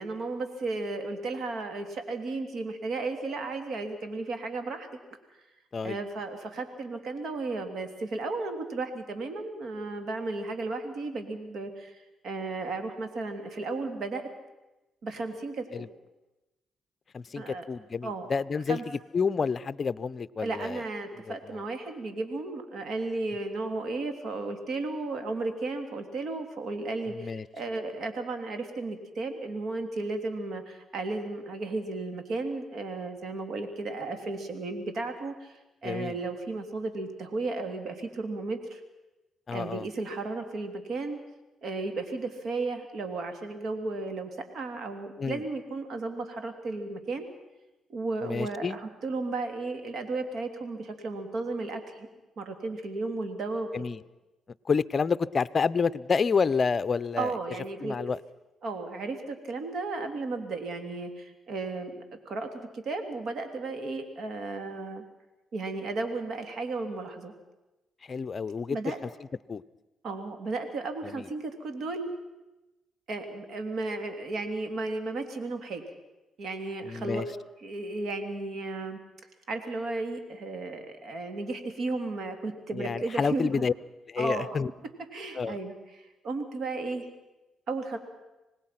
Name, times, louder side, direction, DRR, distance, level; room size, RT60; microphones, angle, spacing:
voice 1, 0.0-4.9 5.8-14.2 15.0-15.9 17.4-17.6 18.0-18.3 18.7-18.8 20.4-38.8 39.5-41.2 41.6-47.3 47.9-52.1 52.4-53.7 57.2-58.0 58.6-65.0 65.5-67.3 68.7-69.0 70.0-72.1 73.1-75.8 76.4-77.2 77.6-79.0 79.5-83.6 84.2-84.5 85.1-87.1 87.7-88.0, right 3 dB, 60° right, 7 dB, 2.9 m, -34 dB
voice 2, 17.1-20.8 21.3-21.6 27.1-27.5 35.8-36.2 39.5-39.9 45.2-45.4 48.2-48.8 53.7-54.0 54.7-57.3 57.8-58.2 68.0-68.8 69.5-69.6 71.0-71.3 76.8-77.3 82.7-83.7 84.1-84.7 85.4-85.6, left 5 dB, 40° left, 16 dB, 0.6 m, -29 dB
26.0 x 19.0 x 5.9 m, 1.0 s
cardioid pair, 90°, 0 cm